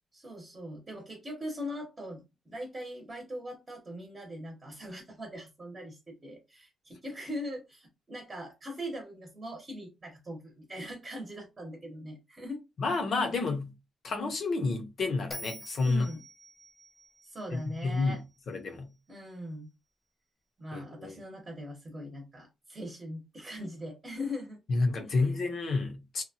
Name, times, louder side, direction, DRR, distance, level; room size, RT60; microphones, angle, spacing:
voice 1, 0.1-12.6 15.8-16.2 17.3-18.2 19.1-19.7 20.6-24.6 25.0-25.1, equal, 30° right, 0.9 m, -41 dB
voice 2, 12.8-13.7 14.0-16.1 17.5-18.2 18.5-18.9 20.7-21.2 24.7-26.2, left 3 dB, 55° left, 0.7 m, -30 dB
Bell, 15.3-18.6, equal, 15° left, 0.5 m, -47 dB
2.8 x 2.2 x 2.7 m
cardioid pair, 110°, 0 cm